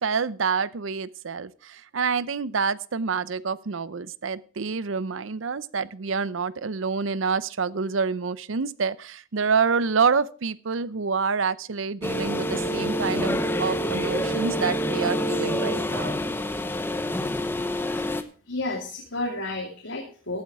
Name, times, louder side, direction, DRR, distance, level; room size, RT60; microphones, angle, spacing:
voice 1, 0.0-16.2, right 5 dB, 80° right, 19 dB, 0.6 m, -27 dB
sound 1, 12.0-18.2, equal, 10° left, 0.8 m, -27 dB
voice 2, 18.5-20.4, left 2 dB, 80° left, 0 dB, 2.7 m, -32 dB
15.0 x 8.8 x 4.7 m, 0.42 s
head